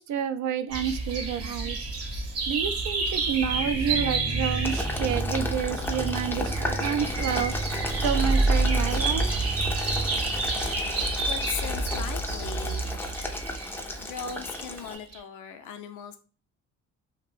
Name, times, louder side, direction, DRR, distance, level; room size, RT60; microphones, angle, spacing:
voice 1, 0.0-1.9 2.5-7.5 8.0-9.3, right 8 dB, 70° right, 9 dB, 0.4 m, -29 dB
sound 1, 0.7-15.2, right 3 dB, 50° right, 0.8 m, -29 dB
sound 2, 3.1-11.0, right 2 dB, 20° right, 0.8 m, -35 dB
Boiling, 4.6-15.0, left 2 dB, 5° left, 0.4 m, -34 dB
voice 2, 10.6-13.2 13.7-16.2, left 7 dB, 80° left, 7 dB, 0.5 m, -39 dB
2.5 x 2.2 x 3.2 m, 0.37 s
cardioid pair, 90°, 30 cm